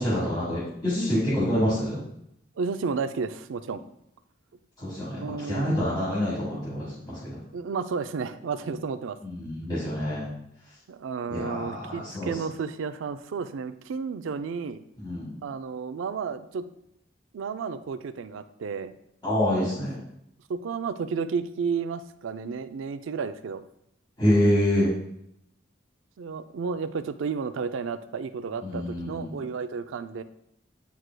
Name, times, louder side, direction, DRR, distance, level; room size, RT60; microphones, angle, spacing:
voice 1, 0.0-2.0 4.8-7.4 9.2-10.3 11.3-12.3 15.0-15.3 19.2-20.0 24.2-24.9 28.6-29.4, left 1 dB, 25° left, -10 dB, 1.5 m, -26 dB
voice 2, 2.6-3.8 5.1-5.9 7.5-9.2 10.9-14.8 15.4-16.7 17.3-18.9 19.7-19.8 20.5-23.6 26.2-30.2, right 5 dB, 90° right, 11 dB, 0.4 m, -32 dB
9.0 x 4.8 x 2.2 m, 0.78 s
head